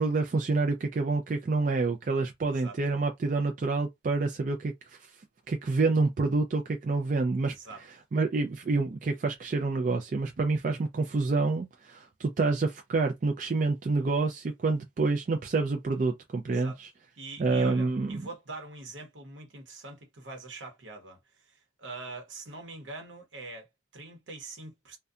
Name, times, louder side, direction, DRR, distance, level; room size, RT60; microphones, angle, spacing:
voice 1, 0.0-4.7 5.5-7.5 8.1-16.9 17.4-18.2, right 3 dB, 40° right, 0.3 m, -27 dB
voice 2, 7.5-7.8 16.5-16.8 17.2-25.0, right 3 dB, 80° right, 0.9 m, -44 dB
2.6 x 2.2 x 2.3 m
head